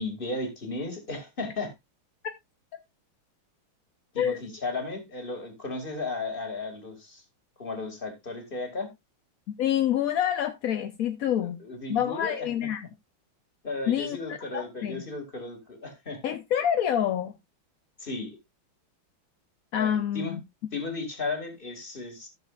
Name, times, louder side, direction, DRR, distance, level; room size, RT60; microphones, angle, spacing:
voice 1, 0.0-1.7 4.1-7.2 7.6-8.9 11.6-12.7 13.6-16.2 18.0-18.4 19.7-20.4 20.7-22.3, left 3 dB, 25° left, 2.4 m, -35 dB
voice 2, 9.6-11.6 11.9-12.9 13.9-15.0 16.2-17.3 19.7-20.4, left 10 dB, 65° left, 0.9 m, -27 dB
14.5 x 6.8 x 2.4 m
omnidirectional pair, 2.2 m